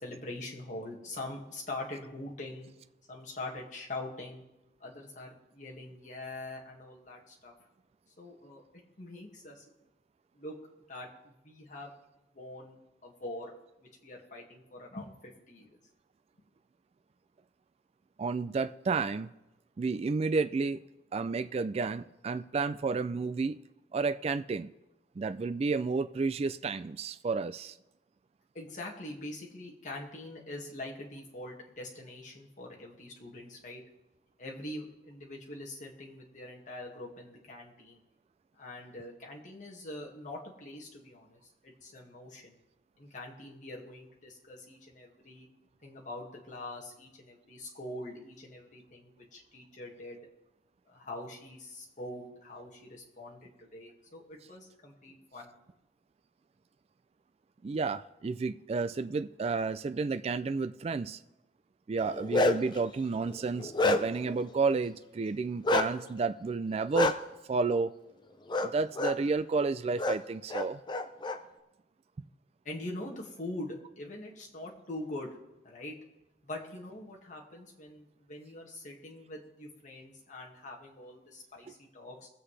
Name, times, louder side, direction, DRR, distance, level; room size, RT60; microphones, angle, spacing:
voice 1, 0.0-2.7 3.1-4.4 4.8-7.5 8.2-8.6 9.0-9.6 10.3-10.5 10.9-11.9 12.3-12.8 13.0-13.5 13.8-15.8 28.5-33.8 34.4-38.0 38.6-42.6 43.0-45.5 45.8-50.2 50.9-55.5 72.6-75.4 75.6-76.0 76.4-82.3, left 2 dB, 45° left, -2 dB, 2.0 m, -43 dB
voice 2, 18.2-19.3 19.8-20.8 21.1-23.6 23.9-24.7 25.2-27.7 57.6-61.2 61.9-67.1 67.5-67.9 68.6-70.8 81.7-81.8, right 4 dB, 35° right, 11 dB, 0.3 m, -31 dB
Bark, 62.0-62.8 63.3-64.3 65.6-65.9 66.9-67.1 68.5-68.7 68.9-69.1 70.0-70.1 70.5-71.4, left 2 dB, 25° left, 0.6 m, -27 dB
22.0 x 7.7 x 3.3 m, 0.96 s
head